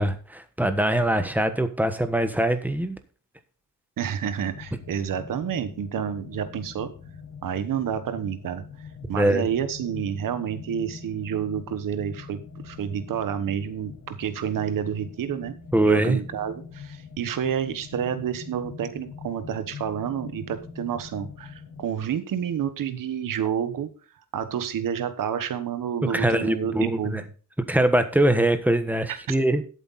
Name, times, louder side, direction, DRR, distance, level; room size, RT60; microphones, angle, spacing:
voice 1, 0.0-3.0 9.1-9.5 15.7-16.2 26.1-27.2 27.7-29.6, right 1 dB, 5° right, 9 dB, 1.3 m, -22 dB
voice 2, 4.0-6.9 7.4-8.6 9.1-15.5 15.8-23.9 24.3-27.2 29.1-29.3, right 8 dB, 75° right, 11 dB, 1.3 m, -29 dB
sound 1, 4.4-21.9, left 5 dB, 80° left, 4.2 m, -43 dB
12.0 x 8.2 x 4.1 m, 0.38 s
cardioid pair, 115°, 33 cm